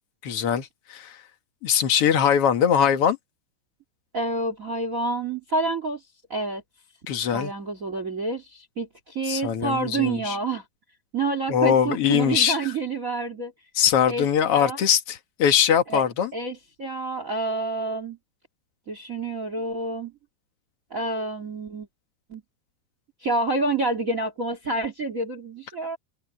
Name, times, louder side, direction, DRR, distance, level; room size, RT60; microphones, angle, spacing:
voice 1, 0.2-1.2 1.6-3.2 7.1-7.5 9.3-10.4 11.5-12.6 13.7-16.3, left 8 dB, 65° left, 1.4 m, -22 dB
voice 2, 4.1-6.0 6.3-6.6 7.3-10.6 11.1-13.5 14.1-14.3 14.5-14.8 15.9-16.0 16.3-18.2 18.9-20.1 20.9-21.9 22.3-22.4 23.2-26.0, right 3 dB, 90° right, 0.7 m, -28 dB
omnidirectional pair, 5.1 m